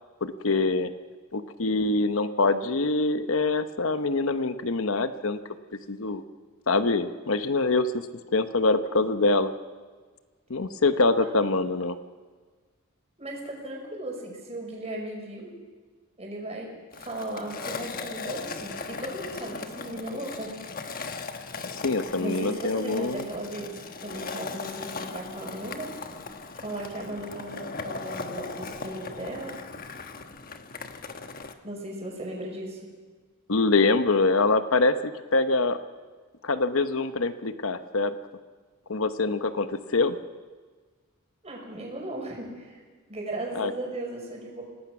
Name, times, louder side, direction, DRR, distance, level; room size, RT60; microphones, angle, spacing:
voice 1, 0.2-0.9 1.3-5.4 5.9-6.2 6.7-8.1 8.3-9.5 10.5-12.0 21.7-23.3 33.5-35.8 36.4-38.2 38.9-40.2 43.5-43.7, left 3 dB, 65° left, 10 dB, 0.9 m, -24 dB
voice 2, 13.2-15.5 16.2-16.7 17.0-20.6 22.2-23.7 24.0-25.9 26.5-29.6 31.6-32.8 41.4-42.8 43.1-44.6, right 1 dB, 30° right, -1 dB, 5.6 m, -36 dB
Skateboard, 16.9-31.5, left 4 dB, 45° left, 1.2 m, -38 dB
26.5 x 18.5 x 6.0 m, 1.4 s
head